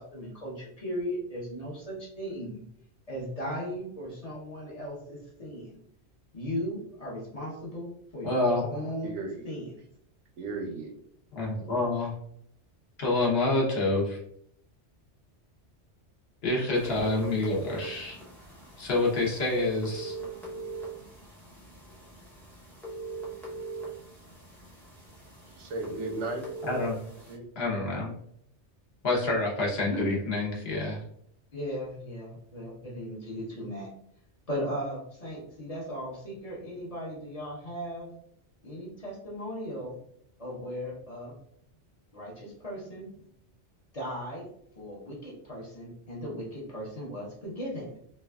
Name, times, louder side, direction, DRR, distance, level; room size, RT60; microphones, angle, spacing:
voice 1, 0.0-2.6 3.1-5.8 6.3-9.1 9.4-9.8 29.8-30.1 31.5-33.9 34.5-38.1 38.6-39.9 40.4-41.4 42.1-43.3 43.9-44.5 44.8-48.0, equal, 35° left, -4 dB, 0.8 m, -37 dB
voice 2, 8.2-8.6 11.3-12.1 13.0-14.2 16.4-18.2 18.8-20.1 26.6-27.0 27.6-28.1 29.0-31.0, left 2 dB, 60° left, -3 dB, 1.1 m, -27 dB
voice 3, 9.0-9.5 10.4-10.9 25.5-26.5 27.3-27.4, right 2 dB, 85° right, 2 dB, 1.0 m, -35 dB
sound 1, 16.7-27.3, right 3 dB, ahead, 0.5 m, -41 dB
3.1 x 2.3 x 2.3 m, 0.68 s
omnidirectional pair, 1.2 m